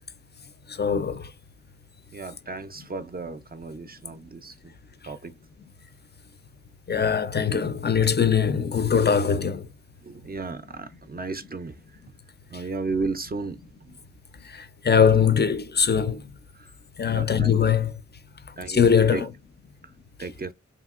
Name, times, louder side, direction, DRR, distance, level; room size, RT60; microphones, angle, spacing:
voice 1, 0.7-1.3 6.9-9.7 12.5-12.6 14.4-16.3 17.0-17.9 18.7-19.3, left 7 dB, 35° left, 0.4 m, -22 dB
voice 2, 2.1-4.6 5.0-5.3 10.0-11.8 12.5-14.0 16.5-16.7 17.1-17.6 18.6-19.3 20.2-20.5, right 3 dB, 30° right, 0.4 m, -34 dB
2.8 x 2.6 x 2.4 m
cardioid pair, 40°, 30 cm